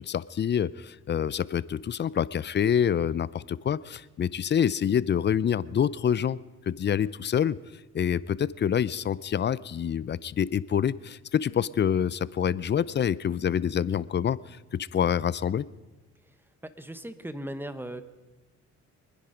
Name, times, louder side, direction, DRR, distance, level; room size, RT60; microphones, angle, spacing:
voice 1, 0.0-6.4 6.7-7.6 7.9-15.7, left 8 dB, 35° left, 19 dB, 0.5 m, -26 dB
voice 2, 16.6-18.0, right 1 dB, 5° right, 12 dB, 1.1 m, -38 dB
24.5 x 10.5 x 5.1 m, 1.1 s
cardioid pair, 90°, 30 cm